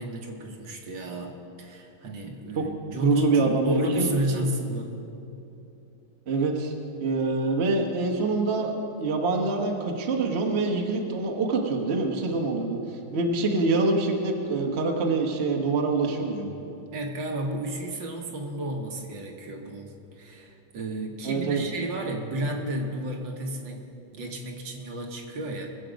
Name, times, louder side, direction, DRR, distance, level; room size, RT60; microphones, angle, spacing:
voice 1, 0.0-5.0 16.9-25.7, right 1 dB, 60° right, 2 dB, 1.7 m, -32 dB
voice 2, 3.0-4.1 6.3-6.7 7.0-16.5 21.2-21.6, right 3 dB, 40° right, 2 dB, 1.0 m, -25 dB
21.0 x 7.6 x 5.1 m, 2.8 s
omnidirectional pair, 2.4 m